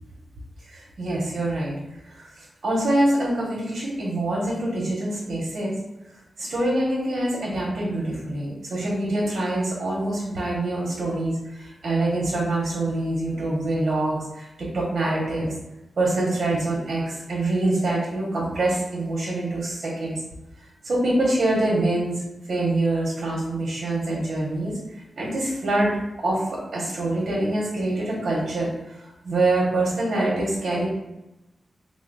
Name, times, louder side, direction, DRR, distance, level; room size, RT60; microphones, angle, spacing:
voice 1, 0.6-1.7 2.1-5.7 6.4-15.5 16.0-20.2 20.6-22.2 22.5-25.9 26.2-30.9, right 2 dB, 65° right, -4 dB, 1.0 m, -25 dB
3.8 x 2.0 x 3.9 m, 0.96 s
wide cardioid pair, 110°, 0 cm